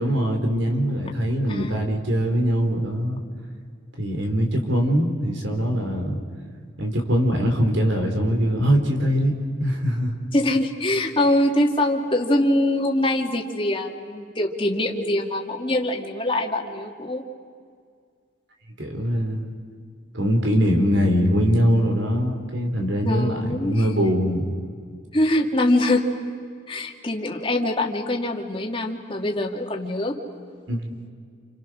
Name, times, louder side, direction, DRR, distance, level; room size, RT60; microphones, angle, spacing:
voice 1, 0.0-3.2 4.0-6.2 6.8-9.3 9.6-10.1 18.8-19.4 20.1-24.4 30.7-30.9, equal, 70° right, 4 dB, 4.0 m, -22 dB
voice 2, 1.5-1.8 10.3-17.3 23.0-23.9 25.1-26.2 26.7-30.2, left 1 dB, 25° left, 1 dB, 2.1 m, -23 dB
29.5 x 28.5 x 6.3 m, 2.1 s
head